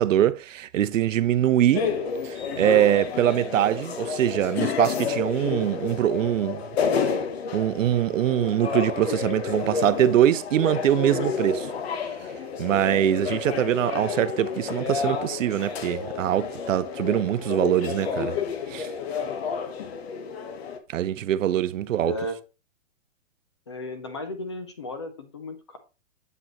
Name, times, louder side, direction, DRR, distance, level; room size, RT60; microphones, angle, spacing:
voice 1, 0.0-1.9 2.2-6.6 7.5-11.7 12.6-18.4 18.7-18.9 20.9-22.1, right 11 dB, 75° right, 0.6 m, -23 dB
sound 1, 1.7-20.8, left 6 dB, 50° left, 1.0 m, -30 dB
voice 2, 21.9-22.4 23.7-25.8, left 1 dB, 25° left, 0.4 m, -35 dB
7.7 x 5.0 x 2.9 m
hypercardioid pair, 160°, 39 cm